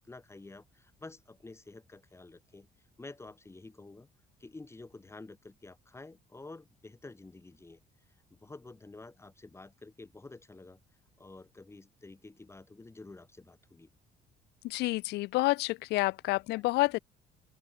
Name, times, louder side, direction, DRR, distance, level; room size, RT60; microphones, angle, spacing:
voice 1, 0.0-2.7 3.0-4.1 4.4-7.8 8.3-10.8 11.2-13.9, left 3 dB, 15° left, 3.0 m, -50 dB
voice 2, 14.6-17.0, left 20 dB, 80° left, 0.4 m, -29 dB
open air
cardioid pair, 110°, 17 cm